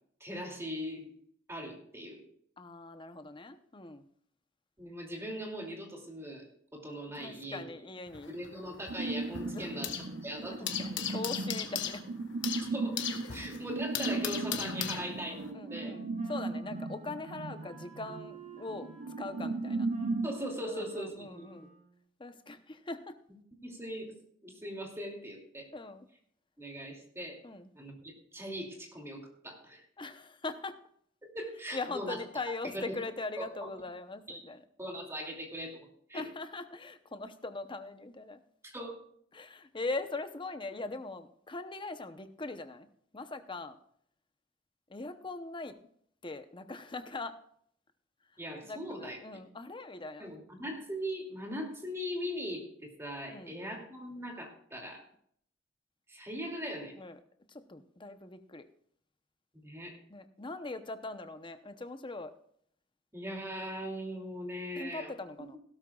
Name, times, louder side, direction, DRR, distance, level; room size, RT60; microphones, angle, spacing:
voice 1, 0.2-1.1 1.5-2.2 4.8-6.4 6.7-7.6 8.3-9.9 10.2-10.8 12.7-13.0 13.3-16.0 20.2-21.5 23.6-24.1 24.4-25.7 26.6-27.4 27.7-29.8 31.3-32.2 32.7-33.0 33.4-33.5 34.3-34.4 34.8-36.2 38.6-39.0 48.4-49.4 50.2-55.0 56.1-57.0 59.6-60.0 63.1-65.1, equal, 15° right, 1 dB, 2.6 m, -40 dB
voice 2, 2.6-4.1 7.1-8.3 9.4-9.8 10.3-12.1 15.5-18.9 19.2-19.9 20.7-21.7 22.2-23.2 25.7-26.1 27.4-27.7 30.0-30.8 31.7-34.6 36.1-38.4 39.3-42.9 43.1-43.8 44.9-45.8 46.2-47.4 48.6-50.3 53.3-53.8 57.0-57.2 57.5-58.6 60.1-62.3 64.8-65.6, left 3 dB, 25° left, 9 dB, 0.8 m, -41 dB
sound 1, 8.1-10.2 10.4-15.5, left 9 dB, 65° left, 1.4 m, -38 dB
sound 2, 8.9-20.3, right 3 dB, 65° right, 0.8 m, -36 dB
Wind instrument woodwind instrument, 14.7-22.1, right 4 dB, 40° right, 4.2 m, -54 dB
16.5 x 12.5 x 2.4 m, 0.65 s
head